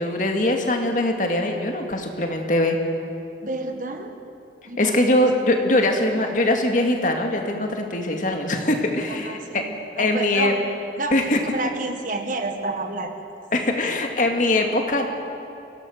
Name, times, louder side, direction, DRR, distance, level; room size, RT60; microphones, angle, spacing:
voice 1, 0.0-2.8 4.8-9.6 10.0-10.5 11.1-11.4 13.5-15.1, left 1 dB, 45° left, 3 dB, 2.2 m, -22 dB
voice 2, 3.4-4.2 4.7-5.3 5.7-5.8 9.1-10.6 11.0-11.2 11.5-13.1, right 2 dB, 45° right, 5 dB, 1.6 m, -30 dB
25.0 x 17.0 x 6.6 m, 2.7 s
head